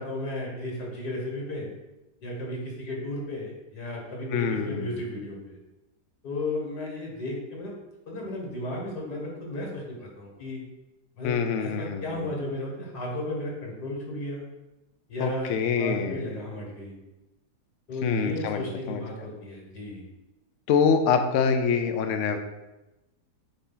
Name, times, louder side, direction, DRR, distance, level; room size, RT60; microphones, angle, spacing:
voice 1, 0.0-1.7 2.2-5.6 6.2-7.7 8.1-10.6 11.2-11.3 11.6-14.4 15.1-16.9 17.9-20.1, left 1 dB, 80° left, -2 dB, 2.1 m, -34 dB
voice 2, 4.3-4.9 11.2-12.3 15.2-16.3 18.0-19.0 20.7-22.4, left 6 dB, 65° left, 7 dB, 0.8 m, -25 dB
7.0 x 2.8 x 5.5 m, 1.0 s
omnidirectional pair, 1.7 m